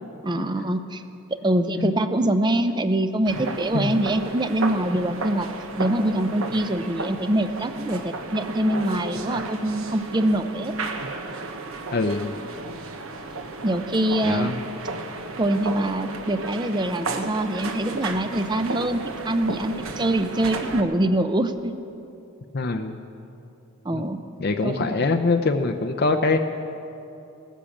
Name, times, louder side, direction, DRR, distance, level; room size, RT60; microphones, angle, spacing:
voice 1, 0.2-1.0 1.3-5.5 5.8-10.7 13.6-14.6 15.4-21.7 23.8-24.2 24.6-24.9, right 1 dB, 20° right, 9 dB, 0.5 m, -24 dB
sound 1, 3.3-20.8, right 3 dB, 70° right, 1.1 m, -33 dB
voice 2, 11.9-12.3 14.2-14.6 22.5-23.0 23.9-24.0 24.4-26.4, left 3 dB, 45° left, 6 dB, 0.6 m, -23 dB
18.5 x 10.0 x 7.2 m, 2.8 s
head